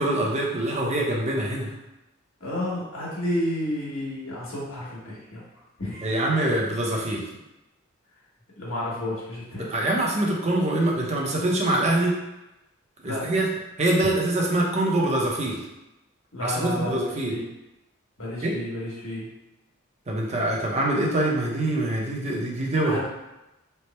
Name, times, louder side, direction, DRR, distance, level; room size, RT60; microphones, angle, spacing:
voice 1, 0.0-1.7 6.0-7.2 9.7-12.2 13.0-13.5 13.8-15.6 16.4-17.3 18.4-18.5 20.1-23.0, right 1 dB, 35° right, -2 dB, 0.6 m, -24 dB
voice 2, 2.4-5.4 5.8-6.2 8.6-9.7 13.0-13.4 16.3-17.5 18.2-19.3 22.8-23.1, left 1 dB, 85° left, -6 dB, 1.4 m, -31 dB
3.3 x 2.0 x 4.1 m, 0.97 s
head